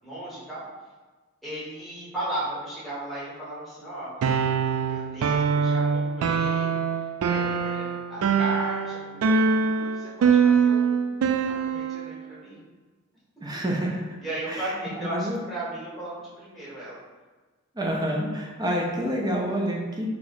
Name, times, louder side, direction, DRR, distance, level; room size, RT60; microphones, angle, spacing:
voice 1, 0.0-0.6 1.4-4.1 4.9-6.8 7.3-12.6 14.2-17.0, right 1 dB, ahead, -10 dB, 1.3 m, -36 dB
sound 1, 4.2-12.1, right 6 dB, 85° right, 0.3 m, -23 dB
voice 2, 13.4-14.0 14.5-15.4 17.7-20.1, equal, 20° right, -1 dB, 0.5 m, -28 dB
2.8 x 2.4 x 4.1 m, 1.3 s
head